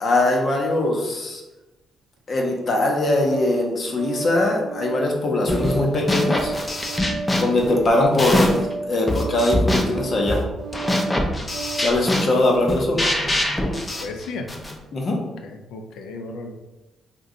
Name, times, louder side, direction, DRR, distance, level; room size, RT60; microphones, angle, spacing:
voice 1, 0.0-1.4 2.3-6.5 7.4-8.5 8.9-10.5 11.8-13.1 14.9-15.2, left 2 dB, 50° left, 0 dB, 0.7 m, -21 dB
Organ, 2.6-12.0, right 3 dB, 85° right, 0.4 m, -32 dB
sound 1, 5.5-5.8 6.1-8.7 9.1-14.8, left 1 dB, 15° left, 0.4 m, -24 dB
voice 2, 13.7-14.5 15.4-16.7, left 3 dB, 80° left, 4 dB, 0.4 m, -35 dB
2.6 x 2.2 x 3.7 m, 1.1 s
cardioid pair, 90°, 0 cm